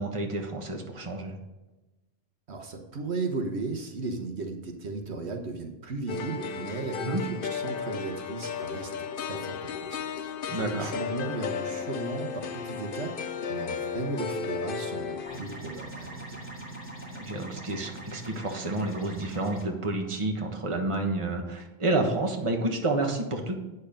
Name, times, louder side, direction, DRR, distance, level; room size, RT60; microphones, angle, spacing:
voice 1, 0.0-1.4 7.0-7.2 10.5-10.9 17.1-23.6, right 2 dB, 30° right, 2 dB, 1.2 m, -29 dB
voice 2, 2.5-16.4, right 3 dB, 70° right, 4 dB, 1.4 m, -36 dB
sound 1, 6.1-15.4, left 6 dB, 55° left, 0.8 m, -34 dB
sound 2, 15.3-19.6, right 2 dB, 10° left, 2.2 m, -42 dB
8.9 x 6.5 x 5.1 m, 1.1 s
omnidirectional pair, 1.2 m